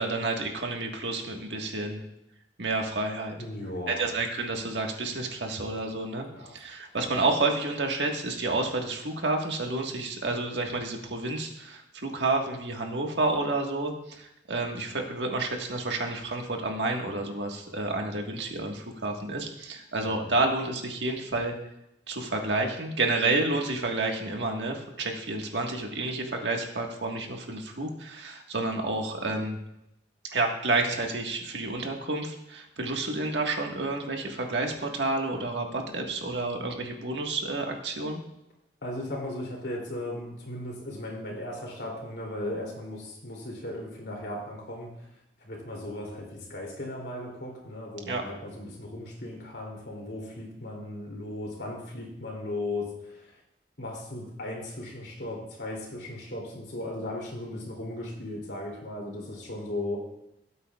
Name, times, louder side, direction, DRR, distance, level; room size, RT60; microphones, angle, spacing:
voice 1, 0.0-2.0 2.6-3.4 3.9-21.6 22.1-29.6 30.3-38.2 48.1-48.2, right 2 dB, 90° right, 2 dB, 1.6 m, -30 dB
voice 2, 3.4-4.1 6.3-6.5 20.0-20.3 38.8-44.9 45.4-53.4 53.8-60.0, left 1 dB, 70° left, -1 dB, 2.9 m, -37 dB
18.0 x 8.3 x 2.4 m, 0.84 s
head